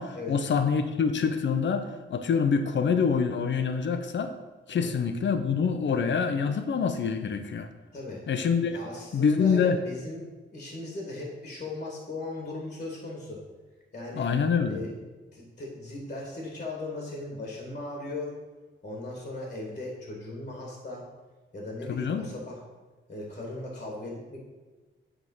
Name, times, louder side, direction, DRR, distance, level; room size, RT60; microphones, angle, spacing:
voice 1, 0.0-4.3 4.7-7.7 8.3-8.8 9.1-9.8 14.1-14.8 21.9-22.3, left 6 dB, 60° left, 8 dB, 0.7 m, -26 dB
voice 2, 7.9-8.2 8.7-10.2 10.5-13.4 13.9-14.3 14.7-14.9 15.3-18.3 18.8-21.0 21.5-22.6 23.1-24.4, left 2 dB, 35° left, -1 dB, 1.9 m, -37 dB
8.1 x 3.7 x 5.6 m, 1.3 s
wide cardioid pair, 105°, 21 cm